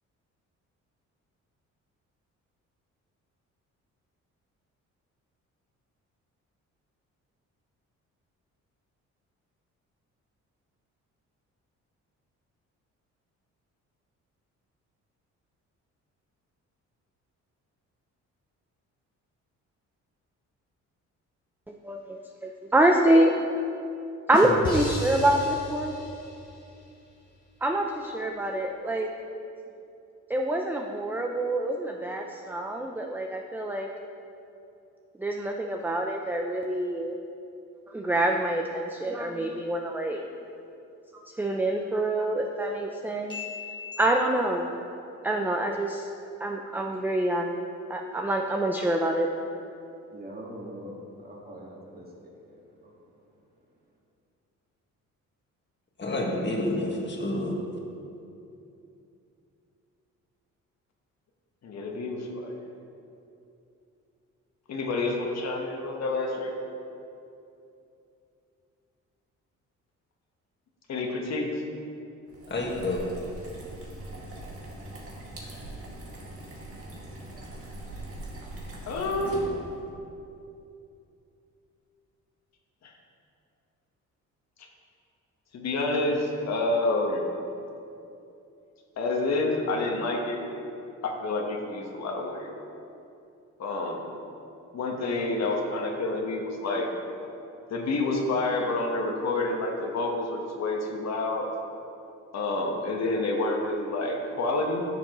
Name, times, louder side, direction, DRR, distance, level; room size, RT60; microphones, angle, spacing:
voice 1, 21.7-23.3 24.3-26.1 27.6-29.1 30.3-33.9 35.2-37.1 37.9-40.2 41.4-43.4 44.0-44.8 45.2-46.1 46.4-47.5 47.9-49.3, right 1 dB, 5° right, 2 dB, 0.5 m, -26 dB
voice 2, 24.6-25.5 25.8-26.5 43.3-44.0, left 2 dB, 15° left, -4 dB, 1.0 m, -34 dB
voice 3, 50.1-53.2, equal, 30° right, -2 dB, 1.8 m, -43 dB
voice 4, 56.0-57.6 72.5-73.0, left 2 dB, 35° left, -1 dB, 1.6 m, -29 dB
voice 5, 61.6-62.6 64.7-66.5 70.9-71.5 78.9-79.5 82.8-82.9 85.5-87.2 89.0-90.5 91.0-92.5 93.6-94.0 94.7-96.9 97.7-101.5 102.3-104.8, left 2 dB, 60° left, 1 dB, 1.3 m, -28 dB
sound 1, 72.3-79.9, right 1 dB, 50° right, 2.0 m, -41 dB
11.0 x 7.2 x 3.0 m, 2.7 s
cardioid pair, 90°, 30 cm